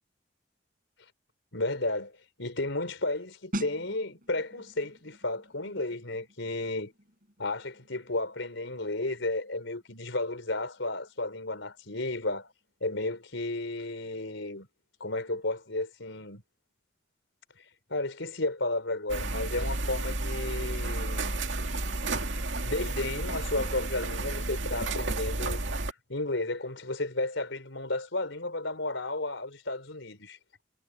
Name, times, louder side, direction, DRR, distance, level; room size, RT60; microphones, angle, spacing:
voice 1, 1.5-2.1 2.4-6.9 7.4-12.5 12.8-14.7 15.0-16.4 17.9-21.3 22.6-25.6 26.1-30.4, left 2 dB, 80° left, 4.4 m, -33 dB
sound 1, 3.5-14.0 14.3-14.6, right 1 dB, 45° right, 7.9 m, -46 dB
sound 2, 19.1-25.9, right 2 dB, 80° right, 2.4 m, -32 dB
head